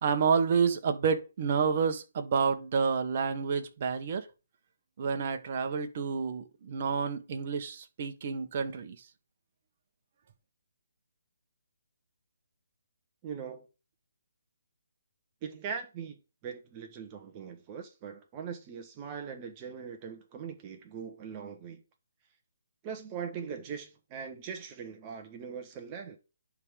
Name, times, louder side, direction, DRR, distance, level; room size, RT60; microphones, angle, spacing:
voice 1, 0.0-4.2 5.0-9.0, right 6 dB, 40° right, 1.5 m, -29 dB
voice 2, 13.2-13.7 15.4-21.8 22.8-26.2, right 6 dB, 25° right, 1.4 m, -41 dB
10.5 x 3.8 x 5.2 m
hypercardioid pair, 155°, 0 cm